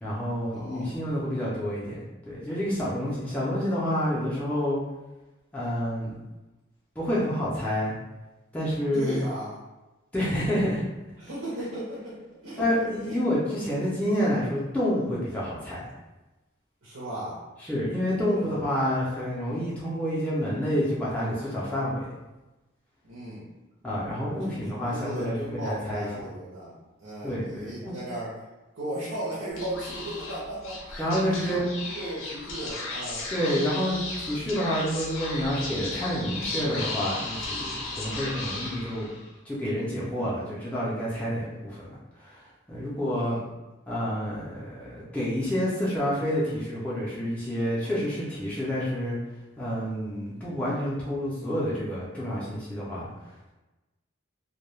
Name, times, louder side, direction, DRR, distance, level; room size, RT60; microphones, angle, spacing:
voice 1, 0.0-4.8 5.5-6.2 7.0-7.9 8.5-9.2 10.1-10.8 12.6-15.8 17.6-22.1 23.8-26.1 27.2-28.0 31.0-31.7 33.3-39.1 39.5-41.9 42.2-42.4 42.7-43.4 43.9-49.2 49.6-53.1, equal, 5° left, -8 dB, 0.4 m, -28 dB
voice 2, 0.5-0.9 8.9-9.6 11.2-12.2 12.4-13.2 16.8-17.4 18.4-18.6 19.4-19.6 23.0-23.4 24.4-28.3 28.8-31.6 31.9-33.3 43.1-43.5, right 1 dB, 75° right, -8 dB, 0.6 m, -36 dB
Speech / Whispering, 29.5-39.3, left 2 dB, 75° left, 0.6 m, -35 dB
2.2 x 2.1 x 3.0 m, 1.1 s
head